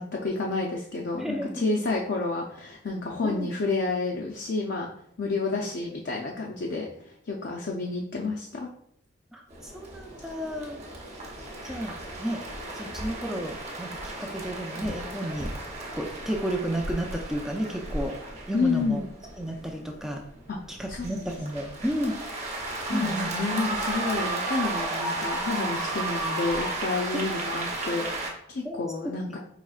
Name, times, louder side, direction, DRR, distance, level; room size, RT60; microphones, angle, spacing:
voice 1, 0.0-4.9 5.2-8.7 18.5-19.0 20.5-20.6 20.9-21.4 22.8-29.4, left 3 dB, 55° left, -1 dB, 0.5 m, -30 dB
voice 2, 1.1-1.8 3.2-3.5 9.3-10.8 11.6-12.4 12.7-15.5 15.9-18.2 18.5-19.0 19.4-20.2 20.7-22.2 22.9-23.5 27.1-27.3 28.6-29.1, equal, ahead, 1 dB, 0.4 m, -32 dB
sound 1, 9.5-28.3, right 2 dB, 35° right, 0.8 m, -34 dB
4.9 x 3.1 x 2.4 m, 0.71 s
head